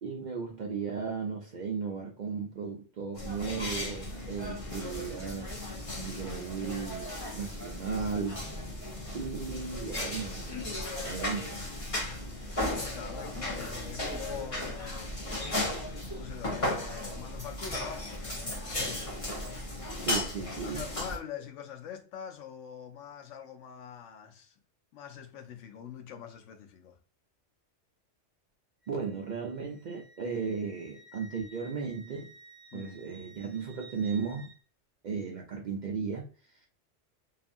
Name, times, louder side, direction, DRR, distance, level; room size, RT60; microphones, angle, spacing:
voice 1, 0.0-5.5 5.9-8.5 9.1-10.6 11.0-11.6 20.0-20.8 28.9-32.3 32.7-34.5 35.0-36.7, right 5 dB, 60° right, 0.5 m, -35 dB
sound 1, 3.1-21.2, left 1 dB, 35° left, 0.7 m, -36 dB
voice 2, 12.6-15.2 16.2-19.1 20.6-24.6 24.9-27.0 32.7-32.9, left 8 dB, 85° left, 0.9 m, -44 dB
Wind instrument woodwind instrument, 28.8-34.6, right 2 dB, 25° right, 0.9 m, -55 dB
2.8 x 2.4 x 2.5 m
omnidirectional pair, 1.2 m